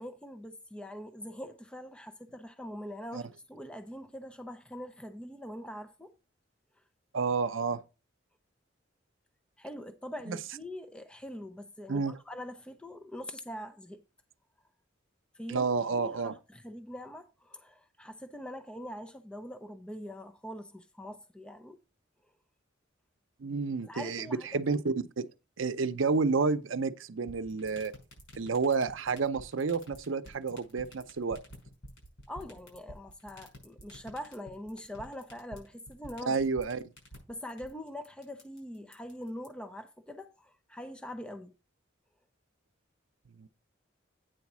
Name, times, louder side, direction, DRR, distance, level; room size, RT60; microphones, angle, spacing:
voice 1, 0.0-6.1 9.6-14.0 15.3-21.8 23.8-24.8 32.3-36.4 37.3-41.5, equal, 5° left, 0.5 m, -43 dB
voice 2, 7.1-7.8 10.3-10.4 11.9-12.2 15.5-16.4 23.4-24.3 24.5-25.3 25.6-27.9 28.4-31.4 36.3-36.8 43.4-43.5, right 4 dB, 85° right, 0.6 m, -30 dB
sound 1, 27.3-39.5, equal, 75° left, 5.6 m, -49 dB
9.0 x 4.1 x 5.9 m
head